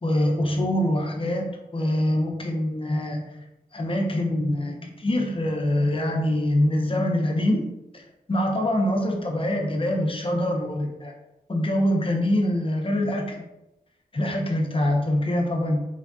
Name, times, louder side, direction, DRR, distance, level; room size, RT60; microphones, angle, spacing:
voice 1, 0.0-3.2 3.7-8.0 8.3-11.1 11.5-13.3 14.1-15.8, left 1 dB, 35° left, 1 dB, 0.6 m, -24 dB
3.2 x 2.5 x 2.2 m, 0.91 s
cardioid pair, 50°, 15 cm